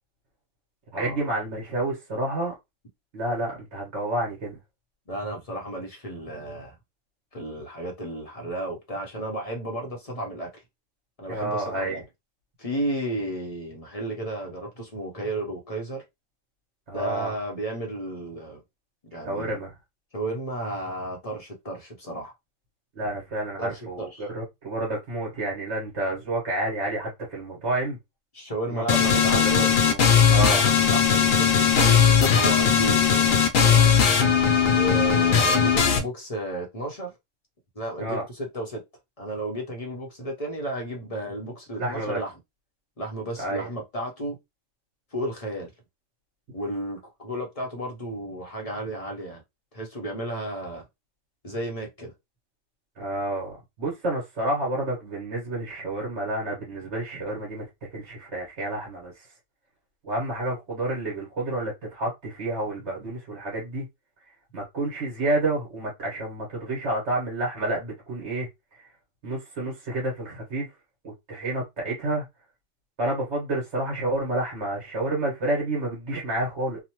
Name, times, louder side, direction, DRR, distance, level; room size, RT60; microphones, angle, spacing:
voice 1, 0.9-2.5 3.1-4.6 11.3-12.0 16.9-17.3 19.2-19.7 22.9-28.0 28.7-30.0 30.3-30.6 38.0-38.2 41.8-42.2 43.4-43.7 53.0-57.6 57.9-59.3 60.0-63.8 64.5-68.9 69.2-70.7 71.0-72.2 73.0-76.8, right 1 dB, 60° right, 1.4 m, -29 dB
voice 2, 5.1-6.8 7.3-10.6 11.2-12.0 12.6-16.0 16.9-18.6 19.1-19.6 20.1-22.3 23.6-24.2 28.3-29.7 30.9-34.0 34.7-37.1 37.7-38.8 39.2-42.3 43.0-44.4 45.1-45.7 46.5-49.4 49.7-50.8 51.4-52.1, right 1 dB, 35° left, 0.6 m, -33 dB
sound 1, 28.9-36.0, left 7 dB, 85° left, 1.0 m, -19 dB
2.9 x 2.1 x 2.9 m
omnidirectional pair, 1.3 m